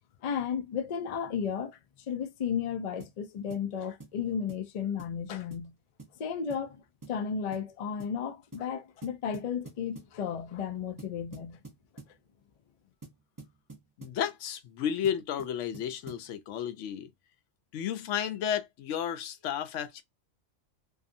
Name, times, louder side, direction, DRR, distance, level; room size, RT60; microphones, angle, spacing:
voice 1, 0.2-1.8 2.1-5.7 6.2-6.8 7.1-11.6, left 7 dB, 65° left, 0.4 m, -33 dB
sound 1, 3.0-3.2 3.5-3.7 4.0-4.2 4.5-4.7 5.0-5.2 5.5-5.7 6.0-6.2 6.5-6.7 7.0-7.2 7.5-7.7 8.0-8.2 8.5-8.7 9.0-10.2 11.0-12.2 13.0-14.2 15.0-16.3, right 3 dB, 20° right, 0.5 m, -49 dB
voice 2, 14.0-17.1 17.7-20.0, left 9 dB, 80° left, 0.9 m, -32 dB
2.7 x 2.3 x 2.5 m
omnidirectional pair, 1.2 m